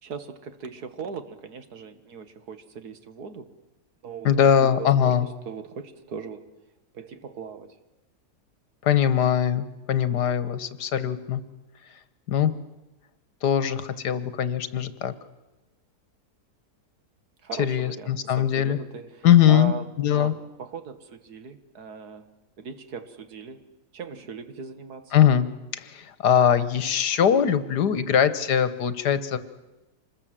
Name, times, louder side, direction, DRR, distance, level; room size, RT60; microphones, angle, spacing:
voice 1, 0.0-3.5 4.0-6.5 6.9-7.8 17.4-19.8 20.1-22.3 22.6-23.6 23.9-25.1, right 5 dB, 70° right, 10 dB, 2.0 m, -39 dB
voice 2, 4.2-5.3 8.8-11.4 12.3-12.5 13.4-15.1 17.6-18.8 19.2-19.7 20.0-20.3 25.1-25.5 25.7-29.4, left 9 dB, 80° left, 14 dB, 1.7 m, -21 dB
26.0 x 20.5 x 7.6 m, 1.0 s
omnidirectional pair, 1.7 m